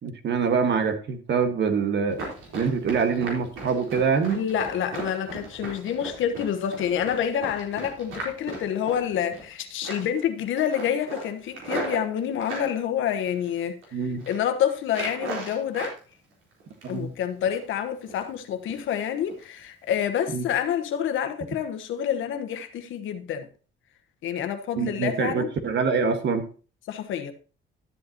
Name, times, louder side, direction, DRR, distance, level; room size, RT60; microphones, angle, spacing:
voice 1, 0.0-2.2 2.5-4.4 13.9-14.3 16.8-17.1 20.3-20.4 24.8-26.5, right 5 dB, 65° right, 1.6 m, -25 dB
Run, 2.1-9.5 9.8-10.2 10.5-12.7 13.3-13.8 14.1-14.4 14.9-16.0 16.3-17.1 17.5-17.6 18.0-18.4 18.7-18.8 19.3-19.4 19.8-19.9, right 2 dB, 85° right, 3.7 m, -37 dB
voice 2, 4.3-13.8 14.3-15.9 16.9-23.5 24.2-25.5 26.9-27.3, left 9 dB, 80° left, 1.1 m, -28 dB
12.0 x 7.9 x 2.9 m
cardioid pair, 90°, 20 cm